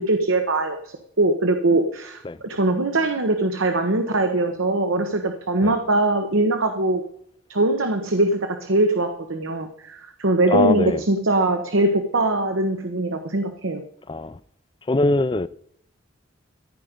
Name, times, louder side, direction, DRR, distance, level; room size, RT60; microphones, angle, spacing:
voice 1, 0.0-7.0 7.5-13.8, right 2 dB, 80° right, 1.1 m, -22 dB
voice 2, 10.5-11.0 14.1-14.4 14.9-15.5, left 2 dB, 25° left, 0.4 m, -22 dB
14.5 x 5.2 x 8.9 m
head